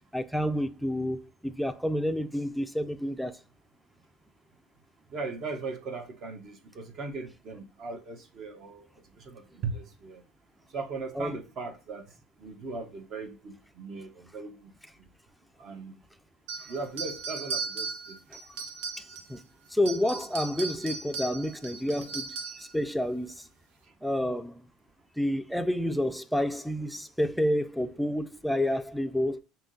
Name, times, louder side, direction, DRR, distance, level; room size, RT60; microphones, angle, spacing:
voice 1, 0.1-3.4 11.2-11.3 19.3-19.4 19.7-23.4 24.0-24.6 25.2-29.4, left 1 dB, ahead, 0.4 m, -29 dB
voice 2, 5.1-8.9 9.1-10.2 10.7-12.1 12.4-14.7 15.6-16.0 16.7-18.2 22.0-22.1 23.8-23.9, right 4 dB, 45° right, 0.8 m, -38 dB
sound 1, 16.5-19.4 19.7-22.7, right 4 dB, 90° right, 0.6 m, -37 dB
5.6 x 2.8 x 2.6 m
supercardioid pair, 115°, 0 cm